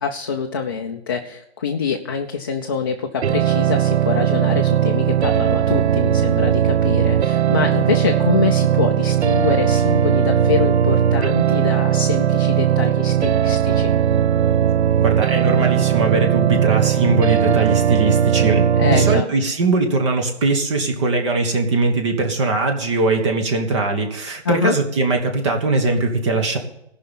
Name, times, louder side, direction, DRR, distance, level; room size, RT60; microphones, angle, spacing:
voice 1, 0.0-13.9 18.7-19.3 24.4-24.8, left 6 dB, 20° left, 2 dB, 0.5 m, -24 dB
sound 1, 3.2-19.2, right 9 dB, 85° right, 0.5 m, -18 dB
voice 2, 15.0-26.6, right 3 dB, 25° right, 4 dB, 1.3 m, -20 dB
14.0 x 5.7 x 8.3 m, 0.81 s
hypercardioid pair, 155°, 32 cm